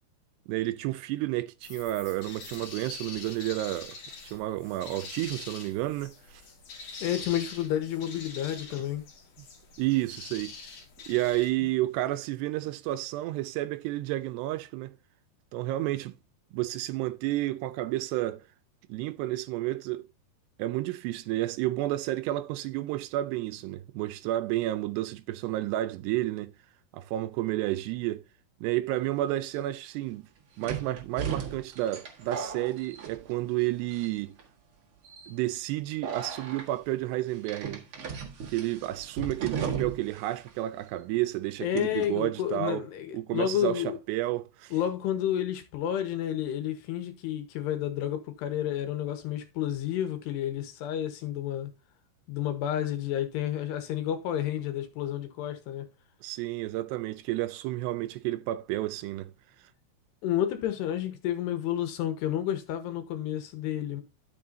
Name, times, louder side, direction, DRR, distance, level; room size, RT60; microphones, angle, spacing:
voice 1, 0.5-4.0 4.3-6.4 9.8-10.5 11.1-14.9 15.5-16.1 16.5-18.4 18.9-20.1 20.6-26.5 26.9-28.2 28.6-30.2 30.6-34.4 35.3-37.8 38.5-42.8 43.1-44.7 56.2-59.3, right 16 dB, 80° right, 2.7 m, -31 dB
sound 1, 1.6-11.5, left 4 dB, 45° left, 2.4 m, -44 dB
voice 2, 7.0-9.0 41.6-44.0 44.7-51.7 52.3-55.9 60.2-64.0, left 11 dB, 75° left, 3.3 m, -30 dB
sound 2, 29.3-29.4 30.6-33.6 33.9-34.4 35.0-35.3 36.0-36.7 37.5-40.2 40.5-40.6 41.8-42.1, right 6 dB, 50° right, 1.7 m, -36 dB
12.5 x 6.7 x 2.8 m
omnidirectional pair, 5.0 m